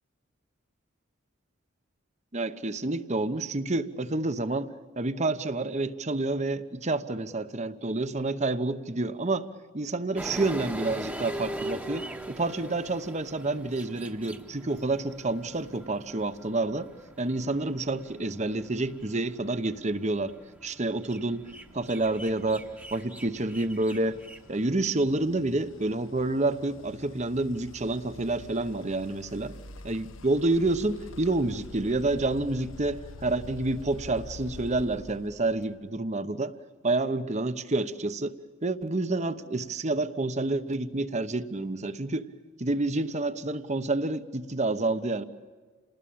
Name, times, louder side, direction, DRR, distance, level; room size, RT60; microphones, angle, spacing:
voice 1, 2.3-4.7 5.0-9.5 9.7-16.9 17.2-20.3 20.6-21.5 21.7-24.2 24.5-29.5 29.8-36.5 36.8-38.4 38.6-42.3 42.6-45.2, right 2 dB, 35° right, 12 dB, 1.0 m, -29 dB
sound 1, 10.1-24.8, right 1 dB, 10° right, 1.2 m, -42 dB
sound 2, 21.4-35.9, left 2 dB, 80° left, 1.0 m, -47 dB
28.5 x 20.0 x 8.7 m, 1.5 s
head